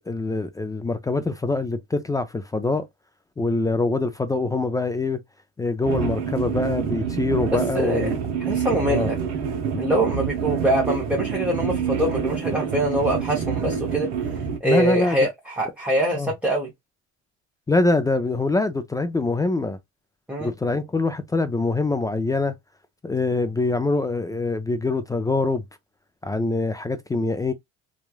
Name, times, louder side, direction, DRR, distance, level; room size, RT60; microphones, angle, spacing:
voice 1, 0.0-2.9 3.4-5.2 5.6-8.2 8.8-9.1 9.7-9.8 14.6-15.3 16.1-16.3 17.7-19.8 20.4-22.5 23.0-25.6 26.2-27.5, left 3 dB, 10° left, 0.3 m, -24 dB
sound 1, 5.8-14.6, right 7 dB, 60° right, 0.8 m, -27 dB
voice 2, 7.5-8.1 8.5-9.2 9.8-16.7 20.3-20.5, right 1 dB, 5° right, 0.7 m, -24 dB
3.0 x 2.3 x 2.3 m
cardioid pair, 110°, 31 cm